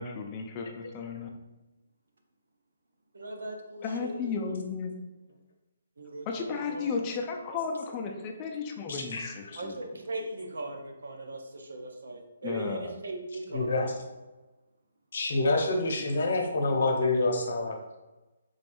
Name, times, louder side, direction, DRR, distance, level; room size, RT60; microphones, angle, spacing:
voice 1, 0.0-1.4 3.8-4.9 6.3-9.8 12.4-12.9, left 5 dB, 30° left, 3 dB, 0.5 m, -34 dB
voice 2, 3.1-4.8 6.0-7.1 7.5-7.6 9.5-14.2, right 2 dB, 75° right, 3 dB, 0.7 m, -40 dB
voice 3, 8.9-9.3 13.5-13.9 15.1-17.8, left 2 dB, 60° left, 2 dB, 0.8 m, -27 dB
3.9 x 3.3 x 2.6 m, 1.1 s
figure-of-eight pair, 145°, 0 cm